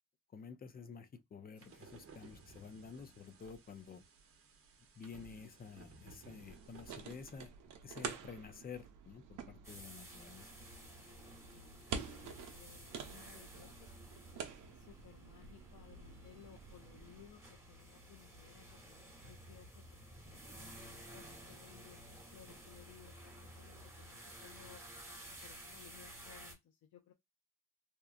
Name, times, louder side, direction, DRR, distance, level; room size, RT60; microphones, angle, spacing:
voice 1, 0.3-4.0 5.0-7.5 7.8-10.5, left 6 dB, 30° left, 0.5 m, -51 dB
sound 1, 1.6-7.5, right 4 dB, 50° right, 0.8 m, -59 dB
sound 2, 6.4-17.3, right 6 dB, 85° right, 0.6 m, -48 dB
sound 3, 9.6-26.5, right 1 dB, 10° right, 1.2 m, -54 dB
voice 2, 11.5-13.9 14.3-24.8 25.4-27.1, left 10 dB, 80° left, 0.5 m, -61 dB
2.9 x 2.1 x 2.4 m
cardioid pair, 90°, 30 cm